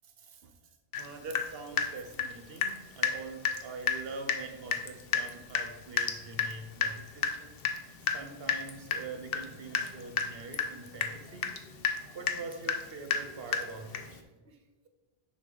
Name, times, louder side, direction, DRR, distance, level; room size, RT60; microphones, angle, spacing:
voice 1, 0.2-0.6 1.0-7.6 8.1-11.5 12.1-14.9, right 3 dB, 70° right, 7 dB, 1.1 m, -44 dB
Water tap faucet / Drip, 0.9-1.1 1.3-2.8 3.0-3.2 3.4-3.6 3.9-4.0 4.3-4.4 4.7-14.2, left 6 dB, 70° left, 0.9 m, -31 dB
6.5 x 5.7 x 3.9 m, 1.2 s
omnidirectional pair, 1.0 m